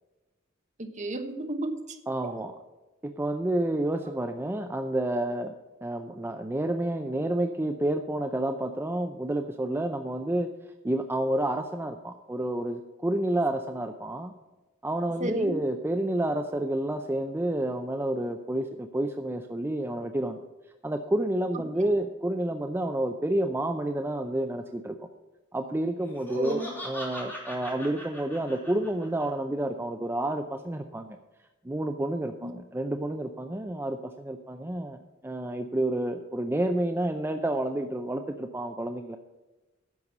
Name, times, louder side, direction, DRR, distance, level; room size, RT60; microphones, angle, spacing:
voice 1, 0.8-2.0 2.2-2.3 15.2-15.5 21.8-21.9 26.3-26.7 32.4-32.5, right 1 dB, 35° right, 6 dB, 1.2 m, -33 dB
voice 2, 2.1-2.5 3.0-5.5 5.8-10.5 10.8-14.3 14.8-20.4 20.8-25.0 25.5-31.2 31.6-39.2, right 1 dB, 10° right, 5 dB, 0.5 m, -29 dB
Laughter, 26.0-29.3, equal, 10° left, 2.9 m, -40 dB
11.0 x 6.8 x 7.2 m, 1.1 s
head